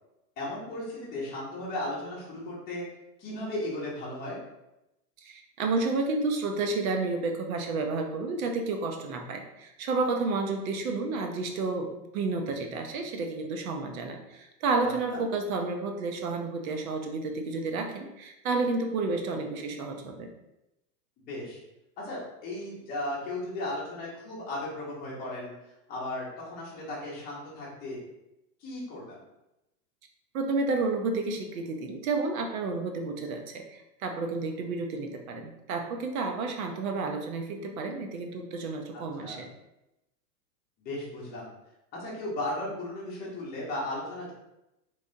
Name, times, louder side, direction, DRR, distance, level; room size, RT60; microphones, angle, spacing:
voice 1, 0.4-2.8 3.2-4.4 14.8-15.2 21.3-21.6 22.0-25.5 25.9-28.0 28.6-29.2 39.2-39.4 40.8-41.5 42.0-44.3, left 1 dB, 20° left, -6 dB, 1.0 m, -36 dB
voice 2, 5.2-20.3 30.3-39.5, right 3 dB, 60° right, 4 dB, 0.7 m, -31 dB
3.3 x 3.3 x 2.6 m, 0.92 s
supercardioid pair, 155°, 49 cm